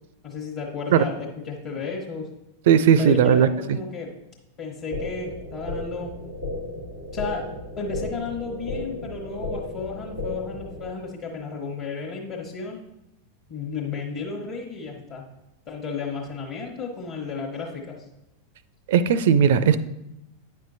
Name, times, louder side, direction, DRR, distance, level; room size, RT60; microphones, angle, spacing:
voice 1, 0.2-2.3 3.0-4.1 4.6-6.1 7.1-7.5 7.8-12.8 13.5-15.3 15.7-18.0, left 4 dB, 40° left, -2 dB, 1.0 m, -33 dB
voice 2, 2.7-3.8 18.9-19.8, right 8 dB, 55° right, 15 dB, 0.4 m, -17 dB
sound 1, 4.9-10.9, left 2 dB, 90° left, 1.2 m, -34 dB
9.2 x 5.7 x 2.6 m, 0.87 s
figure-of-eight pair, 90°, 0 cm